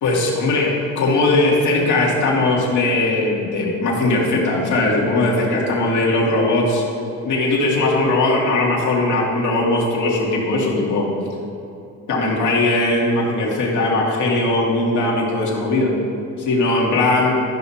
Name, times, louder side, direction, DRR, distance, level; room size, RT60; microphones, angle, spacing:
voice 1, 0.0-6.8 7.2-11.1 12.1-15.9 16.5-17.3, left 2 dB, 75° left, -3 dB, 2.3 m, -19 dB
13.0 x 6.1 x 4.3 m, 2.8 s
cardioid pair, 90°, 30 cm